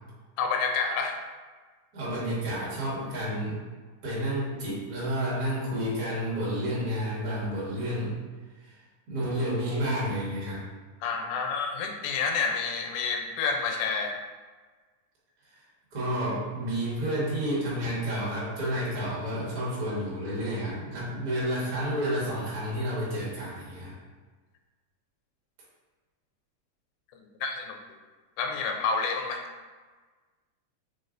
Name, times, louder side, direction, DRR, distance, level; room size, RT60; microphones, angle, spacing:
voice 1, 0.4-1.2 11.0-14.2 27.4-27.8 28.4-29.5, left 5 dB, 90° left, 4 dB, 2.1 m, -29 dB
voice 2, 1.9-3.6 4.0-8.2 8.6-8.8 9.1-10.6 15.9-23.9, equal, 40° right, -7 dB, 1.4 m, -30 dB
4.7 x 4.1 x 2.5 m, 1.4 s
omnidirectional pair, 3.5 m